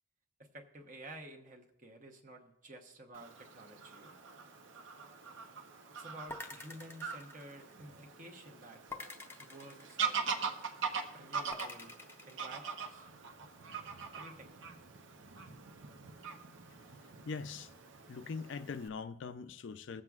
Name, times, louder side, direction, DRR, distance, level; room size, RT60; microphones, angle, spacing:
voice 1, 0.4-4.2 6.0-8.8 9.4-10.5 11.1-11.9 12.3-13.1 14.2-14.5, right 1 dB, 40° right, 1.0 m, -52 dB
Fowl / Bird vocalization bird call bird song, 3.1-18.9, right 5 dB, 75° right, 0.8 m, -42 dB
sound 1, 6.3-8.0 8.9-10.5 11.5-12.5, left 2 dB, 10° left, 0.6 m, -48 dB
voice 2, 17.3-17.7 18.1-20.0, left 5 dB, 70° left, 0.4 m, -42 dB
20.5 x 7.6 x 2.4 m
head